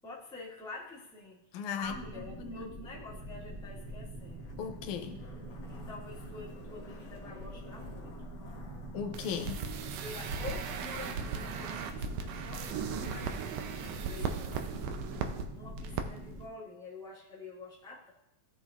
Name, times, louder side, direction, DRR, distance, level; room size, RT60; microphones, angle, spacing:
voice 1, 0.0-4.5 5.7-8.3 10.0-14.8 15.5-18.1, left 3 dB, ahead, 1.3 m, -47 dB
voice 2, 1.5-2.7 4.6-5.2 8.9-9.6, left 7 dB, 85° left, 2.1 m, -37 dB
sound 1, 1.8-16.4, right 1 dB, 35° right, 3.1 m, -44 dB
Zipper (clothing), 3.2-10.8 11.1-11.2, left 4 dB, 55° left, 2.0 m, -56 dB
sound 2, 9.1-15.4 15.8-16.0 16.3-16.4, right 6 dB, 75° right, 1.7 m, -37 dB
16.0 x 5.9 x 2.4 m
omnidirectional pair, 3.4 m